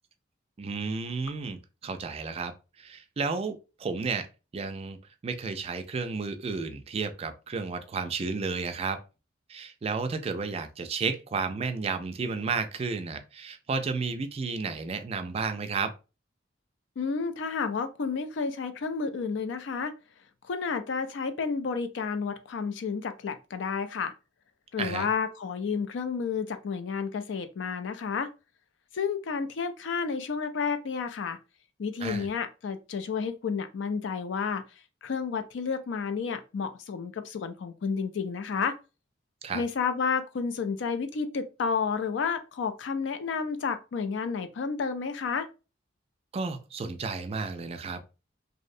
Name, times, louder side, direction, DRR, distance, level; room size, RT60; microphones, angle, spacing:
voice 1, 0.6-2.5 2.8-4.3 4.5-5.0 5.2-9.0 9.5-15.9 24.8-25.1 32.0-32.3 39.4-39.6 46.3-48.2, right 4 dB, 30° right, 0.3 m, -32 dB
voice 2, 17.0-19.9 20.4-24.1 24.7-28.3 28.9-31.4 31.8-34.6 35.0-38.8 39.5-45.5, left 5 dB, 70° left, 0.4 m, -31 dB
2.6 x 2.0 x 2.5 m
head